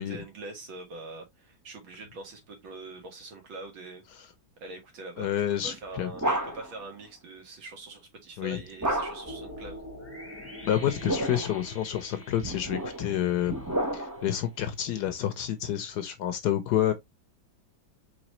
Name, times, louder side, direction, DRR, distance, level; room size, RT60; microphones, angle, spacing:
voice 1, 0.0-4.0 4.6-5.3 5.6-9.8, right 2 dB, 80° right, 2.3 m, -43 dB
voice 2, 5.2-6.1 8.4-8.6 10.6-13.5 13.9-16.9, left 11 dB, 70° left, 1.1 m, -29 dB
sound 1, 5.6-6.8 8.8-9.4 10.8-11.6 12.4-14.3, right 1 dB, 25° right, 0.4 m, -31 dB
sound 2, 9.2-14.4, equal, 10° left, 0.8 m, -45 dB
5.0 x 3.3 x 2.9 m
omnidirectional pair, 2.1 m